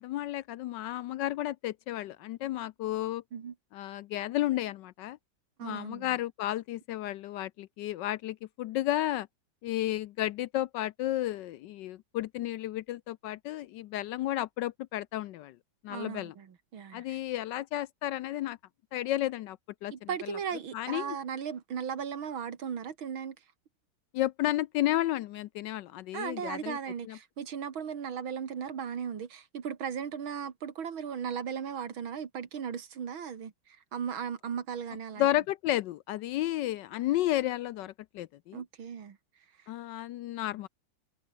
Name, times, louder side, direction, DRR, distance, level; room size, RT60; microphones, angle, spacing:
voice 1, 0.0-3.2 3.7-5.2 5.6-9.3 9.6-15.6 15.8-16.3 16.9-18.6 18.9-20.4 20.7-21.2 24.1-26.8 27.0-27.2 35.2-38.6 39.7-40.7, left 14 dB, 75° left, 1.1 m, -32 dB
voice 2, 5.6-6.2 15.9-17.2 19.9-23.4 26.1-35.3 38.5-39.2, right 7 dB, 80° right, 2.7 m, -37 dB
omnidirectional pair, 2.2 m